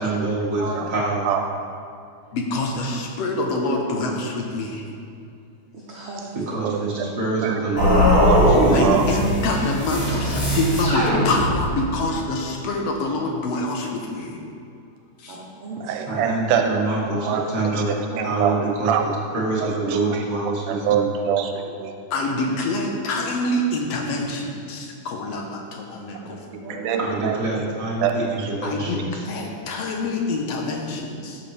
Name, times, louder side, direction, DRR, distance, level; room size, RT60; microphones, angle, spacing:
voice 1, 0.0-0.6 0.9-1.3 6.5-9.0 16.1-18.9 19.3-21.1 27.0-29.2, right 3 dB, 35° right, -5 dB, 1.6 m, -26 dB
voice 2, 0.6-0.9 5.7-6.3 6.6-7.1 8.7-8.8 15.3-16.3 17.3-17.6 18.1-18.4 26.6-27.1, right 2 dB, 60° right, -4 dB, 1.6 m, -35 dB
voice 3, 2.3-4.8 8.7-14.3 15.2-15.3 22.1-26.2 28.6-31.4, left 2 dB, 65° left, 1 dB, 1.8 m, -26 dB
voice 4, 6.6-7.1 7.4-8.4 8.7-9.0 15.8-19.0 19.6-20.3 20.7-21.9 26.2-28.5, right 8 dB, 90° right, 5 dB, 2.2 m, -26 dB
sound 1, 7.8-11.9, equal, 35° left, 2.8 m, -19 dB
13.5 x 7.1 x 3.3 m, 2.4 s
omnidirectional pair, 3.6 m